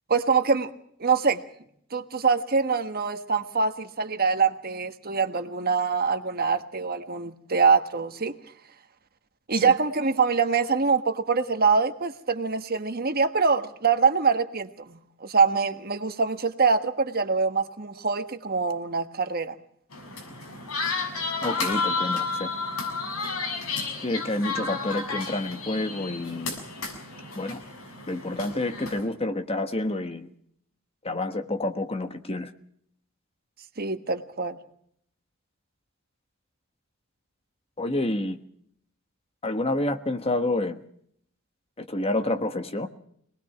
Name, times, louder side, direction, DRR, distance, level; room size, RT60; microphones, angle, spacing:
voice 1, 0.1-0.7 1.0-1.4 1.9-8.3 9.5-19.5 33.8-34.6, right 5 dB, 45° right, 8 dB, 1.5 m, -24 dB
sound 1, 19.9-29.1, left 4 dB, 80° left, 6.7 m, -32 dB
voice 2, 21.4-22.5 24.0-26.6 27.3-27.6 28.1-30.3 31.0-32.5 37.8-38.4 39.4-40.8 41.8-42.9, left 2 dB, 25° left, 8 dB, 1.3 m, -28 dB
25.5 x 19.5 x 5.8 m, 0.68 s
head